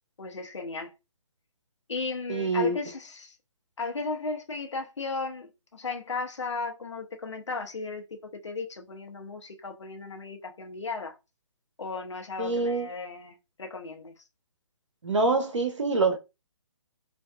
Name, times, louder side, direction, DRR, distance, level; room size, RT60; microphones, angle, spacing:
voice 1, 0.2-0.9 1.9-3.4 3.8-11.2 11.8-14.1, left 4 dB, 65° left, 0.8 m, -35 dB
voice 2, 2.3-2.8 12.4-12.9 15.0-16.2, right 3 dB, 70° right, 0.6 m, -25 dB
2.7 x 2.3 x 2.3 m
figure-of-eight pair, 135°, 16 cm